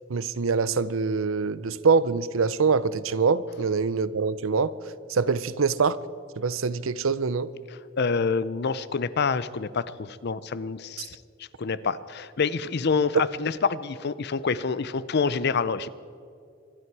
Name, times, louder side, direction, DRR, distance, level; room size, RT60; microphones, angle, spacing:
voice 1, 0.1-4.7 5.1-6.0 6.4-7.5 11.0-11.1, right 5 dB, 85° right, 0.6 m, -24 dB
voice 2, 8.0-11.2 11.6-15.9, left 5 dB, 55° left, 0.6 m, -27 dB
25.0 x 12.5 x 4.7 m
head